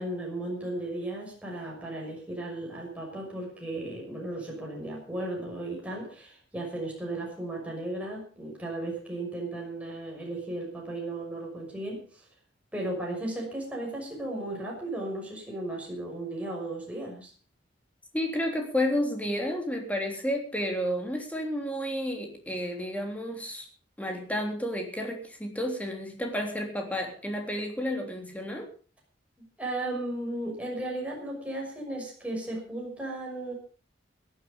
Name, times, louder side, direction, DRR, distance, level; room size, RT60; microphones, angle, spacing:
voice 1, 0.0-12.0 12.7-17.3 29.6-33.5, right 1 dB, 10° right, -2 dB, 6.1 m, -35 dB
voice 2, 18.1-23.7 24.0-28.7, equal, 10° left, 2 dB, 3.3 m, -31 dB
17.0 x 11.5 x 5.2 m, 0.40 s
head